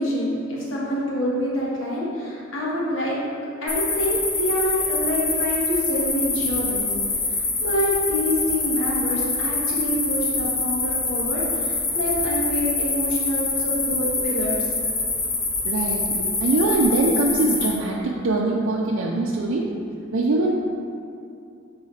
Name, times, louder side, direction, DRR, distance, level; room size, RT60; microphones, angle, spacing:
voice 1, 0.0-3.2 3.6-6.9 7.6-14.6, equal, 70° left, -6 dB, 1.4 m, -26 dB
sound 1, 3.7-17.7, left 3 dB, 40° left, 1.1 m, -25 dB
voice 2, 15.6-19.7 20.1-20.5, right 2 dB, 80° right, -2 dB, 0.5 m, -22 dB
8.5 x 3.9 x 3.2 m, 2.4 s
head